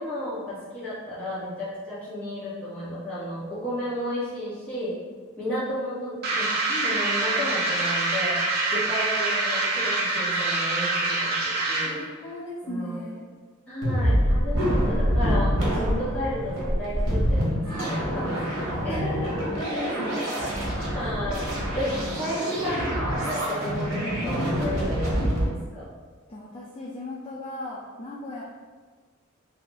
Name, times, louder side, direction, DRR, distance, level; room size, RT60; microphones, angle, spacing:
voice 1, 0.0-5.0 5.4-6.5 6.8-8.4 8.7-12.0 12.6-13.0 13.7-19.5 19.8-19.9 20.9-21.5 21.7-25.8, equal, 5° left, -12 dB, 1.2 m, -32 dB
sound 1, 6.2-12.0, right 3 dB, 45° right, 0.5 m, -25 dB
voice 2, 6.7-7.0 11.8-13.3 17.8-18.2 19.3-20.4 22.6-22.9 26.3-28.4, left 1 dB, 25° left, -5 dB, 0.3 m, -37 dB
sound 2, 13.8-25.4, equal, 70° right, 1.0 m, -26 dB
2.7 x 2.4 x 3.8 m, 1.5 s
head